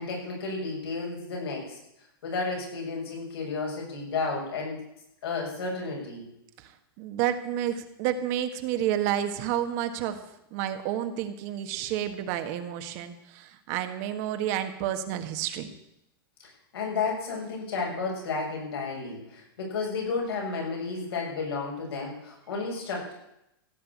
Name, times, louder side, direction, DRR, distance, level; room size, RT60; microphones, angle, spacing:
voice 1, 0.0-1.8 2.2-4.9 5.2-6.3 16.4-23.1, left 4 dB, 85° left, -2 dB, 7.7 m, -32 dB
voice 2, 7.0-10.2 10.5-15.7, right 11 dB, 45° right, 8 dB, 1.6 m, -30 dB
15.5 x 7.6 x 8.6 m, 0.82 s
hypercardioid pair, 145°, 13 cm